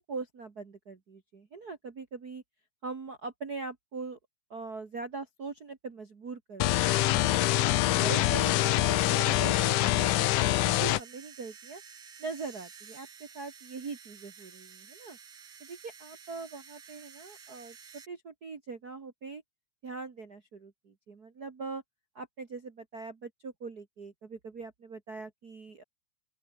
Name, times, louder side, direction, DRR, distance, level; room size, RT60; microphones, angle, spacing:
voice 1, 0.0-2.4 2.8-4.2 4.5-7.6 8.0-11.8 12.2-15.2 15.6-19.4 19.8-21.8 22.1-25.8, right 4 dB, 35° right, 2.1 m, -42 dB
sound 1, 6.6-11.0, left 15 dB, 80° left, 2.4 m, -25 dB
sound 2, 8.0-18.1, right 6 dB, 55° right, 4.2 m, -51 dB
open air
omnidirectional pair, 3.6 m